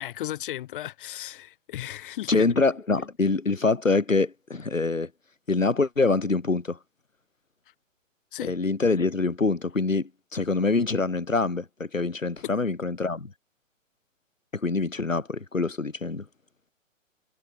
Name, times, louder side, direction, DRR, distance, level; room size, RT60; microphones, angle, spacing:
voice 1, 0.0-2.5 8.3-8.6, left 13 dB, 40° left, 5.6 m, -35 dB
voice 2, 2.3-5.1 5.5-6.8 8.5-13.3 14.5-16.2, left 3 dB, 75° left, 4.8 m, -25 dB
figure-of-eight pair, 125°, 39 cm